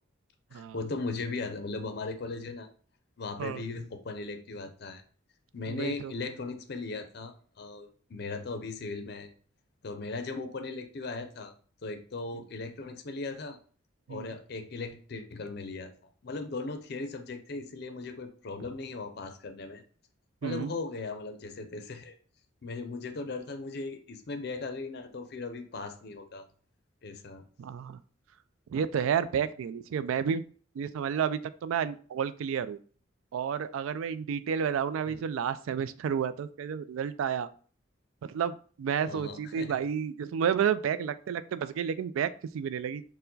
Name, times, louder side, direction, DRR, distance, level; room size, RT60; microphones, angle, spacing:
voice 1, 0.5-2.7 3.2-5.0 5.5-9.3 9.8-11.5 11.8-13.6 14.1-15.9 16.2-19.8 20.4-22.2 22.6-26.4 27.0-27.4 35.0-35.2 39.1-39.8, left 3 dB, 50° left, 7 dB, 0.5 m, -38 dB
voice 2, 5.7-6.1 14.1-14.3 20.4-20.7 27.6-28.0 28.7-30.4 30.7-32.8 33.3-37.5 38.2-43.0, right 7 dB, 85° right, 15 dB, 0.3 m, -31 dB
4.5 x 2.1 x 3.8 m, 0.43 s
head